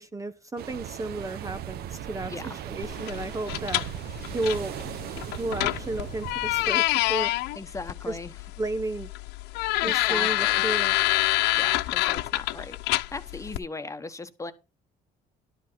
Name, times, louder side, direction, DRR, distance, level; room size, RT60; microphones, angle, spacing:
voice 1, 0.0-2.3 2.7-3.8 4.3-4.8 5.3-7.5 8.1-8.2 8.6-9.1 9.8-10.9, right 2 dB, 20° right, 0.9 m, -33 dB
sound 1, 0.6-6.7, right 10 dB, 70° right, 1.0 m, -38 dB
voice 2, 2.3-2.6 7.5-8.3 9.8-10.7 11.6-12.8 13.1-14.5, left 3 dB, 20° left, 1.2 m, -38 dB
sound 2, 2.8-13.6, left 19 dB, 90° left, 0.5 m, -27 dB
12.0 x 5.4 x 5.6 m
cardioid pair, 110°, 17 cm